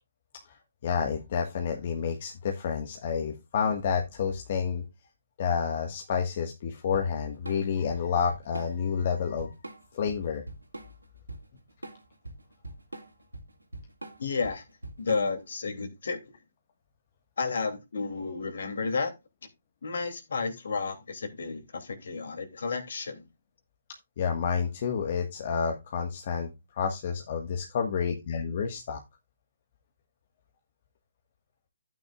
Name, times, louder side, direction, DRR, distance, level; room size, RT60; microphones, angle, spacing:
voice 1, 0.8-4.8 5.4-9.5 9.9-10.4 24.2-26.5 26.8-29.0, left 6 dB, 40° left, 1.5 m, -29 dB
Drum kit / Drum, 6.9-15.5, right 2 dB, 85° right, 2.5 m, -43 dB
voice 2, 14.2-14.6 15.0-16.2 17.4-19.1 19.8-23.2, left 4 dB, 60° left, 2.7 m, -32 dB
12.0 x 9.3 x 2.4 m
figure-of-eight pair, 140°, 0 cm